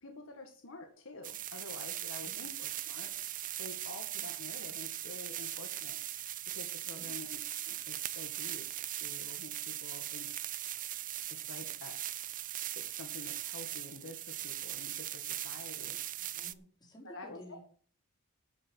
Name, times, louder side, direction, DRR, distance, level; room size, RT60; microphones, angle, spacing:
voice 1, 0.0-3.1 3.6-6.0 6.5-10.3 11.3-12.0 12.7-16.0 17.0-17.6, left 2 dB, 60° left, 4 dB, 1.9 m, -49 dB
sound 1, 1.2-16.5, right 13 dB, 35° right, 0.6 m, -40 dB
voice 2, 6.9-7.2 16.2-17.6, right 1 dB, 20° left, -1 dB, 4.9 m, -53 dB
12.5 x 7.0 x 6.3 m, 0.44 s
head